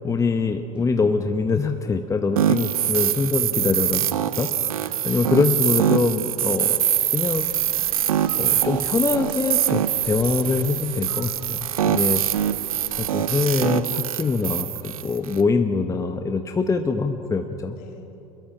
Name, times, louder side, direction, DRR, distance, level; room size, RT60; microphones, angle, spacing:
voice 1, 0.0-4.1 4.4-4.5 5.0-6.8 7.1-7.5 8.3-12.2 13.0-17.8, left 4 dB, 15° left, 6 dB, 1.1 m, -23 dB
sound 1, 0.7-4.8, equal, 25° right, 6.8 m, -51 dB
sound 2, 2.4-15.4, right 10 dB, 75° right, 0.7 m, -24 dB
voice 2, 4.5-5.6 6.4-6.6 11.8-12.3 17.7-18.2, equal, 55° left, 2 dB, 3.4 m, -49 dB
sound 3, 7.0-13.1, right 9 dB, 50° right, 1.8 m, -44 dB
24.5 x 21.5 x 6.0 m, 2.8 s
figure-of-eight pair, 75°, 18 cm